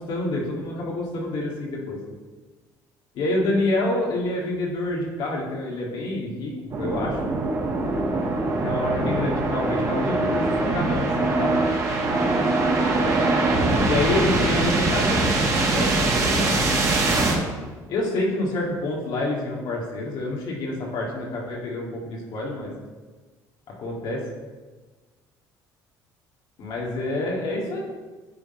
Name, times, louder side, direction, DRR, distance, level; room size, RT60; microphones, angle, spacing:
voice 1, 0.0-2.0 3.1-6.5 6.8-7.2 8.5-11.6 13.9-16.5 17.9-22.7 23.8-24.2 26.6-27.8, left 2 dB, 65° left, -3 dB, 1.9 m, -27 dB
sound 1, 6.7-17.4, right 2 dB, 40° right, 1.5 m, -22 dB
9.8 x 3.6 x 4.4 m, 1.3 s
cardioid pair, 105°, 8 cm